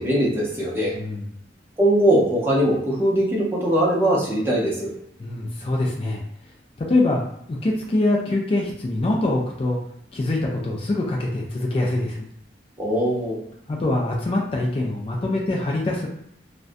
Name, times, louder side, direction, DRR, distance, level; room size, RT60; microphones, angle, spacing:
voice 1, 0.0-1.0 1.8-4.9 12.8-13.4, right 1 dB, 15° right, -5 dB, 0.6 m, -21 dB
voice 2, 0.9-1.3 5.2-6.2 6.8-7.2 7.5-9.8 10.1-12.3 13.7-16.1, left 2 dB, 30° left, -1 dB, 0.3 m, -24 dB
2.4 x 2.1 x 2.5 m, 0.71 s
head